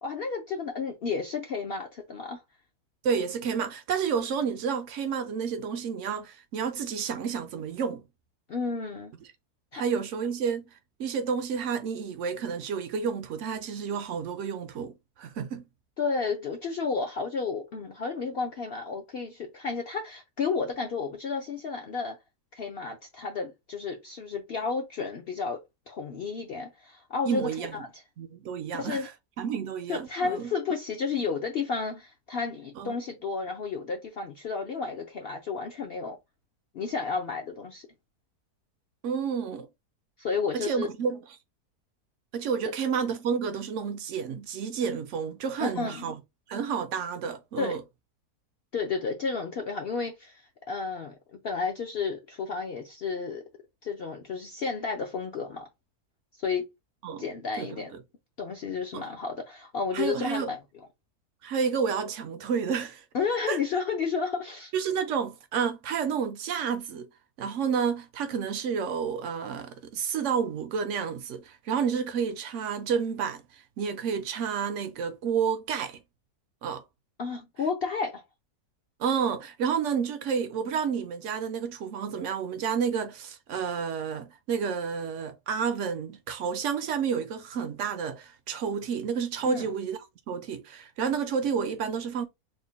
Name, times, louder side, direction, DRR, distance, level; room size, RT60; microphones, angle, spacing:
voice 1, 0.0-2.4 8.5-9.1 9.7-9.8 16.0-22.2 22.5-28.0 28.8-29.1 29.9-36.2 36.7-37.9 40.2-40.9 45.6-46.1 47.6-47.8 48.7-53.4 53.8-55.7 56.4-56.7 57.2-57.9 58.4-60.6 63.1-64.7 77.2-78.2 89.5-89.7, left 5 dB, 65° left, 0.5 m, -32 dB
voice 2, 3.0-8.0 9.7-10.6 11.0-15.6 27.3-27.8 28.2-29.1 29.4-30.5 32.8-33.0 39.0-39.7 40.5-41.4 42.3-46.2 46.5-47.8 57.0-57.2 57.6-58.0 58.9-59.1 59.9-60.5 61.4-63.0 63.5-63.6 64.7-67.1 67.4-76.0 76.6-76.8 79.0-90.0 90.3-92.3, right 6 dB, 70° right, 0.7 m, -30 dB
3.5 x 2.1 x 3.9 m
omnidirectional pair, 1.7 m